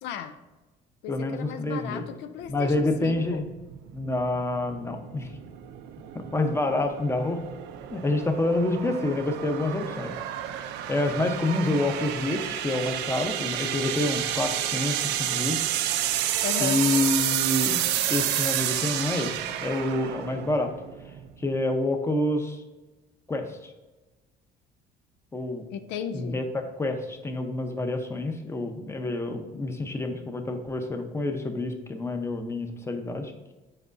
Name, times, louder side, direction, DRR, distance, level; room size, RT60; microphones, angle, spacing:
voice 1, 0.0-0.4 1.0-3.5 16.4-16.9 25.7-26.4, left 8 dB, 90° left, 9 dB, 0.5 m, -35 dB
voice 2, 1.1-2.0 2.5-3.4 3.9-5.3 6.1-7.4 7.9-10.1 10.9-15.6 16.6-17.8 18.1-20.7 21.4-22.6 23.3-23.7 25.3-25.6 26.1-33.5, left 2 dB, 15° left, 5 dB, 0.8 m, -28 dB
sound 1, 2.5-21.6, right 11 dB, 90° right, 0.5 m, -30 dB
7.8 x 4.9 x 2.6 m, 1.1 s
cardioid pair, 110°, 17 cm